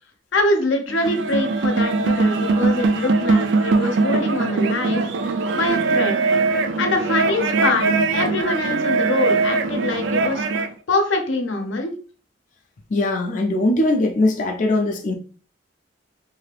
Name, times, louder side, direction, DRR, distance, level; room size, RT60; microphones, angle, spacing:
voice 1, 0.3-5.1 5.5-6.2 6.8-10.5 10.9-11.9, left 2 dB, 85° left, 0.6 m, -24 dB
sound 1, 0.9-10.7, right 3 dB, 70° right, 0.3 m, -21 dB
voice 2, 12.9-15.1, left 2 dB, 45° left, 0.4 m, -20 dB
2.6 x 2.4 x 3.3 m
head